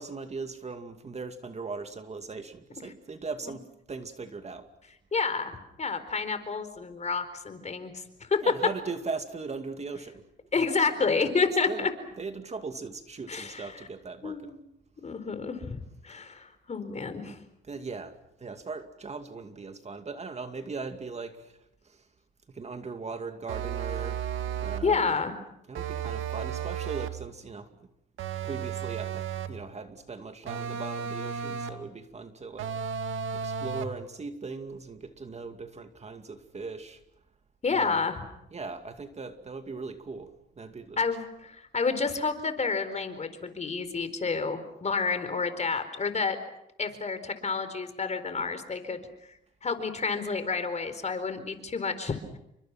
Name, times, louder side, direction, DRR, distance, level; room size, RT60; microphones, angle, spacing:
voice 1, 0.0-4.7 8.4-10.2 10.5-10.7 11.6-14.5 17.6-21.6 21.8-22.0 22.5-24.2 24.6-25.2 25.7-27.7 28.4-32.7 33.3-37.0 37.7-38.0 38.5-41.1, right 4 dB, 35° right, 7 dB, 2.4 m, -39 dB
voice 2, 5.1-8.4 10.5-11.9 13.3-13.8 14.2-14.6 15.0-17.4 24.8-25.3 37.6-38.2 41.0-46.4 46.8-52.4, left 4 dB, 35° left, 10 dB, 4.3 m, -30 dB
sound 1, 23.5-25.0 25.7-27.3 28.2-29.6 30.5-31.9 32.6-34.0, right 7 dB, 80° right, 2.1 m, -34 dB
29.5 x 25.0 x 6.0 m, 0.82 s
cardioid pair, 90°, 20 cm